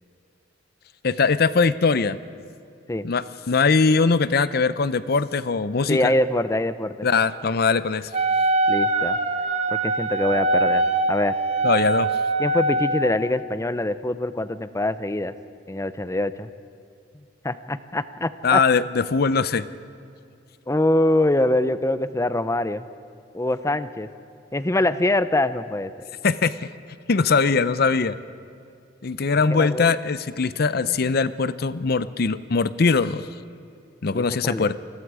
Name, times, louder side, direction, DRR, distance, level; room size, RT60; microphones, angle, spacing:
voice 1, 1.0-2.2 3.0-6.1 7.0-8.1 11.6-12.1 18.4-19.7 26.2-26.5 27.1-28.2 29.0-33.3 34.0-34.8, left 4 dB, 55° left, 15 dB, 0.6 m, -21 dB
voice 2, 5.9-7.1 8.7-9.2 9.7-10.8 11.1-11.4 12.4-15.3 15.7-16.5 17.4-18.6 20.7-22.9 23.3-24.1 24.5-25.9 29.3-29.9 30.6-31.1 34.1-34.7, left 1 dB, 15° left, 13 dB, 0.7 m, -24 dB
Wind instrument woodwind instrument, 8.1-13.2, right 2 dB, 35° right, 1.2 m, -23 dB
28.0 x 21.0 x 4.9 m, 2.4 s
head